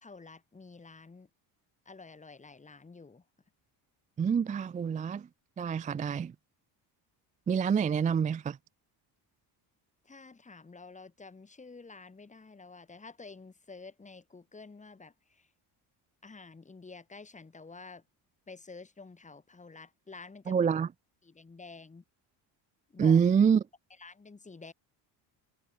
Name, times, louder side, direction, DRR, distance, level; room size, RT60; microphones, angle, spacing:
voice 1, 0.0-1.3 1.8-3.2 10.0-15.5 16.2-18.0 18.5-20.6 21.2-22.0 22.9-23.2 24.0-24.7, left 4 dB, 15° left, 2.7 m, -50 dB
voice 2, 4.2-5.3 5.6-6.3 7.5-8.6 20.5-20.9 23.0-23.6, right 7 dB, 20° right, 0.3 m, -26 dB
cardioid pair, 130°, 44 cm